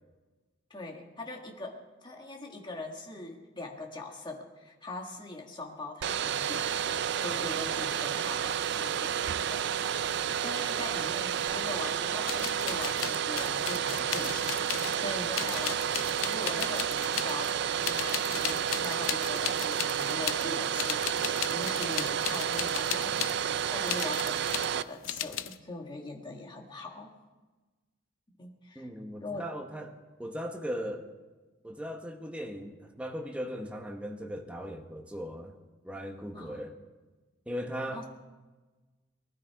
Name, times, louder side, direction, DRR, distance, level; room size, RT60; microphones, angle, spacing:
voice 1, 0.7-6.7 7.2-9.7 10.0-27.1 28.3-28.9 29.2-29.5 36.3-36.6 37.9-38.1, left 2 dB, 25° left, 1 dB, 1.7 m, -42 dB
Domestic sounds home sounds, 6.0-24.8, right 8 dB, 60° right, 0.5 m, -31 dB
sound 1, 8.9-15.7, right 1 dB, 40° right, 2.1 m, -60 dB
sound 2, 11.5-11.6 12.2-15.1 15.3-17.5 17.8-20.5 20.7-23.4 23.9-24.7 25.0-25.6, left 11 dB, 85° left, 0.6 m, -36 dB
voice 2, 28.7-31.1 31.6-35.6 35.8-36.8 37.5-38.1, equal, 5° right, 3 dB, 1.2 m, -38 dB
19.5 x 12.5 x 4.7 m, 1.2 s
head